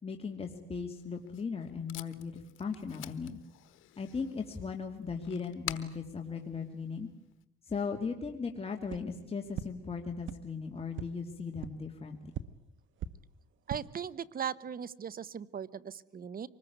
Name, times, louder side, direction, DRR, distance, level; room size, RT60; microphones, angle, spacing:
voice 1, 0.0-3.4 4.0-7.1 7.6-12.3, left 5 dB, 30° left, 3 dB, 2.5 m, -38 dB
Packing tape duct tape, 0.9-7.4, left 15 dB, 90° left, 1.3 m, -48 dB
sound 1, 8.9-9.0 9.5-9.6 10.2-10.3 10.9-11.0 11.6-11.7 12.3-12.4 13.0-13.1 13.5-13.8, right 9 dB, 75° right, 1.2 m, -37 dB
voice 2, 13.7-16.5, right 8 dB, 45° right, 19 dB, 1.1 m, -38 dB
25.0 x 20.5 x 9.4 m, 0.84 s
cardioid pair, 90°, 20 cm